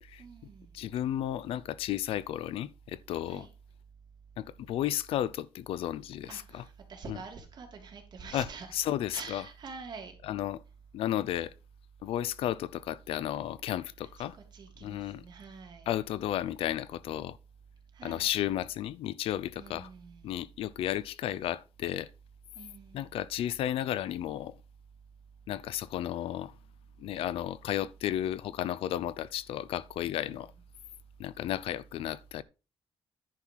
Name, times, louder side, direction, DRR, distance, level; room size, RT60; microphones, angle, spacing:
voice 1, 0.2-0.7 3.3-3.5 6.3-8.8 9.1-10.1 14.0-15.9 17.9-18.3 19.6-20.4 22.5-23.2 30.2-30.5, right 5 dB, 50° right, 3.0 m, -46 dB
voice 2, 0.7-3.5 4.4-6.6 7.1-7.2 8.3-8.5 8.7-9.4 10.3-10.6 10.9-11.5 12.0-14.4 14.8-15.2 15.9-17.4 18.0-19.9 20.2-22.1 22.9-24.6 25.5-26.5 27.0-30.5 31.2-32.4, left 12 dB, 85° left, 0.5 m, -33 dB
10.5 x 5.8 x 4.6 m
cardioid pair, 120°, 9 cm